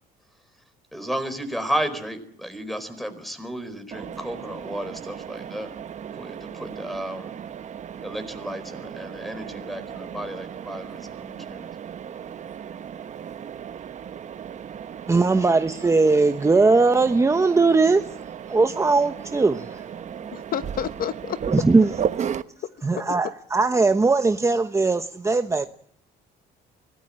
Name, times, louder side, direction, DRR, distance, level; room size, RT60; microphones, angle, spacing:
voice 1, 0.9-5.7 6.1-7.3 8.0-11.6, right 1 dB, ahead, 4.6 m, -33 dB
Mechanisms, 3.9-22.4, right 8 dB, 45° right, 1.1 m, -35 dB
voice 2, 15.1-18.2 18.5-19.8 21.5-21.9 22.8-25.7, right 3 dB, 15° right, 1.1 m, -19 dB
voice 3, 20.3-21.4 23.0-23.1, left 10 dB, 60° left, 1.1 m, -30 dB
25.0 x 18.5 x 8.8 m
cardioid pair, 110°, 17 cm